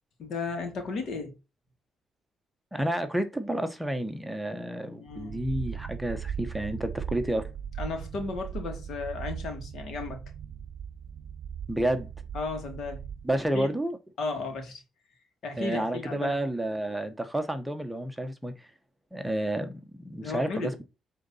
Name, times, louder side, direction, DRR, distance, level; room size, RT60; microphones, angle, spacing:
voice 1, 0.2-1.3 5.0-5.5 7.8-10.3 12.3-13.1 13.5-13.7 14.2-14.8 15.4-16.4 20.2-20.7, left 4 dB, 65° left, 2.5 m, -34 dB
voice 2, 2.7-7.5 11.7-12.1 13.2-14.0 15.6-18.7 19.1-20.8, right 1 dB, 5° right, 1.0 m, -30 dB
sound 1, 5.1-13.5, right 8 dB, 60° right, 0.7 m, -38 dB
8.5 x 3.9 x 4.1 m
cardioid pair, 90°, 0 cm